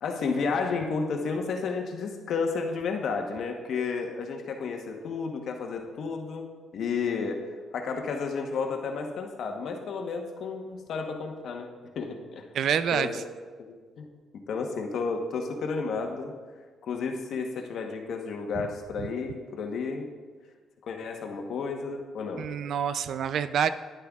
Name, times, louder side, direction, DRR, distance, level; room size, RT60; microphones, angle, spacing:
voice 1, 0.0-6.4 6.7-11.7 11.9-12.4 12.9-13.2 13.6-14.1 14.5-16.3 16.8-20.1 20.8-22.5, left 4 dB, 70° left, 3 dB, 1.0 m, -32 dB
voice 2, 12.5-13.2 19.0-19.1 22.4-23.7, right 8 dB, 70° right, 13 dB, 0.4 m, -27 dB
10.5 x 10.0 x 2.4 m, 1.5 s
cardioid pair, 90°, 0 cm